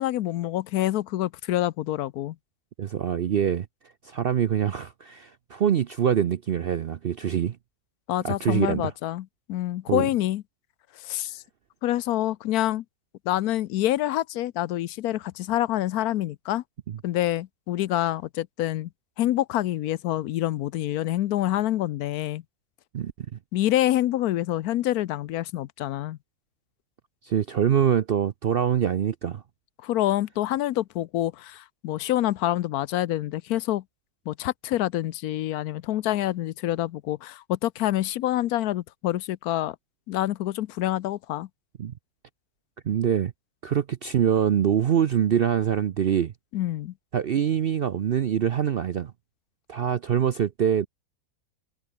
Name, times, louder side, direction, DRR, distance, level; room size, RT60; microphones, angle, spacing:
voice 1, 0.0-2.4 8.1-10.4 10.9-11.4 11.8-12.8 13.3-16.6 17.0-18.9 19.2-22.4 23.5-26.2 29.8-33.8 34.3-39.8 40.1-41.5 46.5-46.9, left 14 dB, 75° left, 1.1 m, -27 dB
voice 2, 2.8-3.7 4.0-7.6 8.2-8.9 9.9-10.1 16.9-17.0 22.9-23.4 27.2-29.4 41.8-41.9 42.8-43.3 43.6-46.3 47.1-49.1 49.7-50.9, right 9 dB, 60° right, 0.6 m, -24 dB
omnidirectional pair, 1.6 m